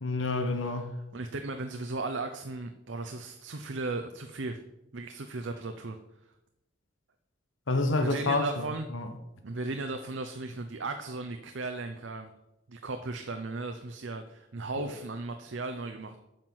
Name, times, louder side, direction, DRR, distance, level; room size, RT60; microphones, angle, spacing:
voice 1, 0.0-1.0 7.7-8.7 8.9-9.1, left 2 dB, 75° left, 1.1 m, -28 dB
voice 2, 1.1-4.6 4.9-6.0 8.0-8.9 9.4-12.3 12.7-16.2, right 3 dB, 65° right, 0.7 m, -36 dB
9.0 x 5.9 x 7.8 m
head